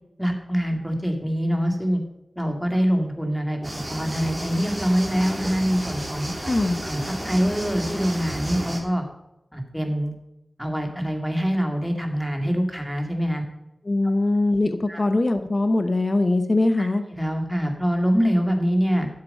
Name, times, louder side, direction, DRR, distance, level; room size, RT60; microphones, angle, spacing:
voice 1, 0.2-2.0 2.4-6.3 6.8-9.0 9.5-10.1 10.6-13.4 14.9-15.0 16.8-19.1, equal, ahead, 3 dB, 2.3 m, -24 dB
sound 1, 3.6-8.8, right 1 dB, 20° right, 2.8 m, -32 dB
voice 2, 6.4-6.8 13.8-17.0, left 2 dB, 45° left, 8 dB, 0.9 m, -22 dB
12.0 x 7.7 x 5.5 m, 0.89 s
wide cardioid pair, 75°, 0 cm